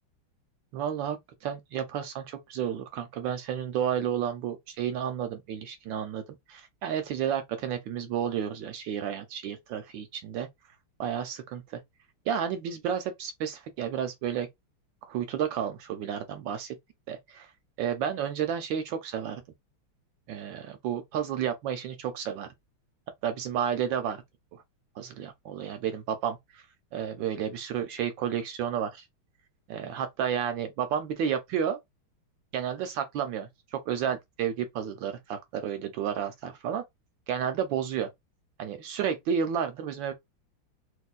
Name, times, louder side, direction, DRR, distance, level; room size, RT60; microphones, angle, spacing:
voice 1, 0.7-6.2 6.5-10.5 11.0-11.8 12.3-14.5 15.1-16.8 17.1-17.5 17.8-19.4 20.3-22.5 23.2-24.2 24.5-24.6 25.0-26.6 26.9-29.0 29.7-31.8 32.5-36.8 37.3-38.1 38.6-40.1, right 8 dB, 75° right, 1.2 m, -31 dB
3.1 x 3.0 x 2.4 m
omnidirectional pair, 2.3 m